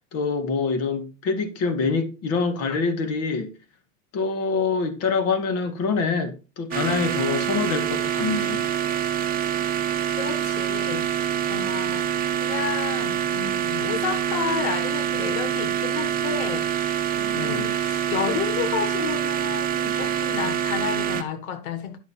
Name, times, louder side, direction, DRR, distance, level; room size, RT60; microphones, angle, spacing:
voice 1, 0.1-3.5 4.1-8.7 17.3-17.7, left 4 dB, 35° left, 2.3 m, -25 dB
sound 1, 6.7-21.2, right 10 dB, 20° right, 1.2 m, -25 dB
voice 2, 10.2-16.7 17.1-22.0, left 8 dB, 80° left, 1.7 m, -31 dB
11.5 x 6.6 x 4.3 m
supercardioid pair, 155°, 42 cm